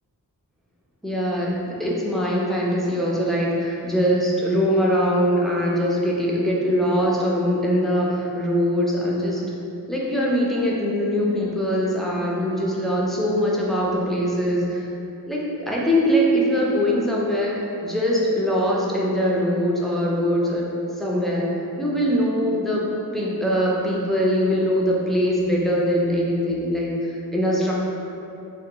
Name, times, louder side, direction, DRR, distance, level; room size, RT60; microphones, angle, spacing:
voice 1, 1.0-9.4 9.9-14.9 15.3-20.7 21.0-21.5 21.8-27.7, equal, ahead, -4 dB, 0.4 m, -22 dB
2.6 x 2.5 x 2.9 m, 2.7 s
wide cardioid pair, 85°, 38 cm